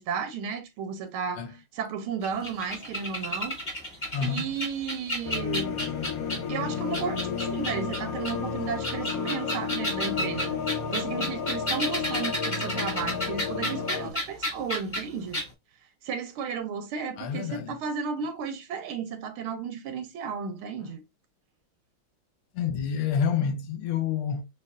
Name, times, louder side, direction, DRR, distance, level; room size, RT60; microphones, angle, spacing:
voice 1, 0.0-3.6 4.2-5.9 6.5-10.6 10.9-15.4 16.0-21.0, right 6 dB, 85° right, 1.7 m, -34 dB
sound 1, 2.2-6.5 6.9-8.3 8.7-15.0 15.3-15.5, equal, 20° left, 1.9 m, -32 dB
voice 2, 4.1-4.5 17.2-17.8 20.8-20.9 22.5-24.5, left 7 dB, 90° left, 1.7 m, -28 dB
sound 2, 5.2-14.1, left 6 dB, 70° left, 0.8 m, -32 dB
6.5 x 2.7 x 2.3 m
omnidirectional pair, 2.3 m